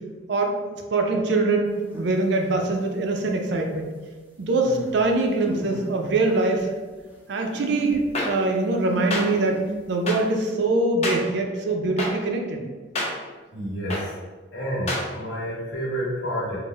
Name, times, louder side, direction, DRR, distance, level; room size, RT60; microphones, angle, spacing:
voice 1, 0.9-1.7 2.0-3.9 4.4-6.7 7.3-9.6 9.9-12.6, right 2 dB, 60° right, 2 dB, 0.5 m, -23 dB
sound 1, 1.8-2.1 2.7-2.8 4.6-5.9 6.2-6.6 7.0-7.1 7.5-8.1 8.8-9.8, left 1 dB, 10° right, 0.5 m, -36 dB
sound 2, 8.1-8.3 9.1-9.2 10.1-10.2 11.0-11.2 12.0-12.1 12.9-13.1 13.9-14.0 14.9-15.0, left 2 dB, 35° left, 0.7 m, -26 dB
voice 2, 13.5-14.1 14.5-16.6, equal, 65° left, -6 dB, 1.3 m, -29 dB
3.8 x 2.1 x 3.9 m, 1.4 s
head